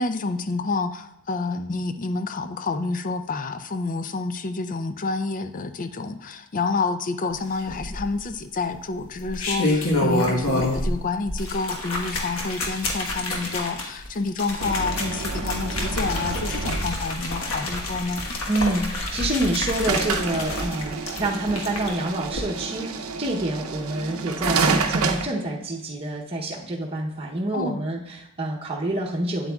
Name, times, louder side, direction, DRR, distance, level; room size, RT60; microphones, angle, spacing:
voice 1, 0.0-18.2 27.5-27.9, left 3 dB, 40° left, 9 dB, 0.4 m, -28 dB
sound 1, 7.7-8.3 9.1-11.0 11.3-21.9 22.3-22.4, left 1 dB, 70° left, 1.3 m, -28 dB
sound 2, 14.6-17.3 19.9-25.3, right 4 dB, 80° right, 0.7 m, -28 dB
voice 2, 18.5-29.5, right 1 dB, 25° right, -4 dB, 0.8 m, -27 dB
8.7 x 8.0 x 2.3 m, 0.87 s
head